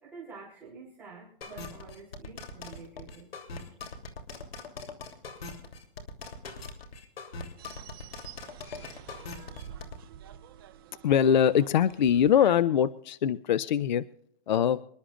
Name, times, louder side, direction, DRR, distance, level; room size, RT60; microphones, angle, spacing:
voice 1, 0.0-3.3, right 4 dB, 5° right, -9 dB, 3.6 m, -48 dB
sound 1, 1.4-10.0, left 3 dB, 75° left, 3.1 m, -41 dB
sound 2, 7.6-12.6, right 10 dB, 25° right, 0.6 m, -49 dB
voice 2, 11.0-14.0 14.5-14.8, left 9 dB, 50° left, 18 dB, 0.5 m, -23 dB
26.0 x 11.5 x 2.4 m, 0.67 s
hypercardioid pair, 160°, 30 cm